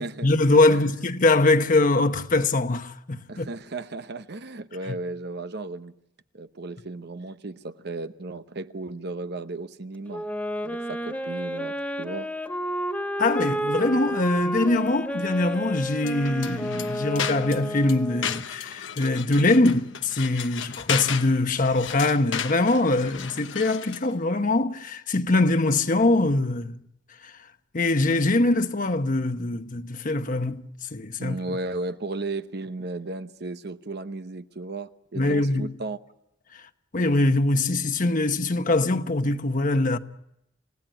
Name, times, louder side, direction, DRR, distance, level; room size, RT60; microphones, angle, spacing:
voice 1, 0.2-3.5 4.9-5.0 13.2-26.8 27.2-27.4 27.7-31.4 35.1-35.7 36.5-36.6 36.9-40.0, left 2 dB, 45° left, 1.1 m, -23 dB
voice 2, 3.3-5.9 6.3-10.2 10.6-12.3 31.2-36.0, right 2 dB, 55° right, 0.9 m, -35 dB
Wind instrument woodwind instrument, 10.1-18.4, equal, 5° left, 1.8 m, -31 dB
sound 1, 16.0-24.1, left 8 dB, 70° left, 1.0 m, -34 dB
29.0 x 17.0 x 9.0 m
head